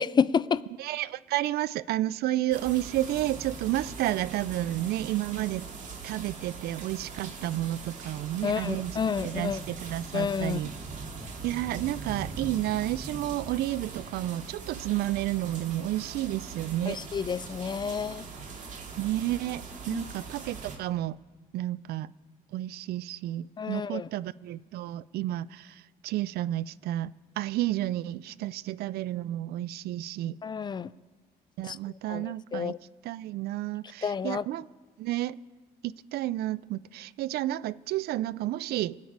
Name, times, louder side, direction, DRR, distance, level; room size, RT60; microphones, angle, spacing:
voice 1, 0.0-0.6 8.4-9.6 10.1-10.6 16.9-18.3 19.9-20.0 23.6-24.1 30.4-30.9 31.6-31.8 32.1-32.8 34.0-34.4, left 6 dB, 25° left, 0.3 m, -29 dB
voice 2, 0.8-5.6 6.0-10.7 11.4-17.0 19.0-21.2 21.5-22.1 22.5-30.4 31.6-32.7 33.0-34.7 35.0-35.4 35.8-39.0, right 14 dB, 70° right, 0.4 m, -31 dB
sound 1, 2.5-20.8, right 4 dB, 50° right, 2.1 m, -41 dB
22.5 x 8.4 x 4.7 m
cardioid pair, 110°, 17 cm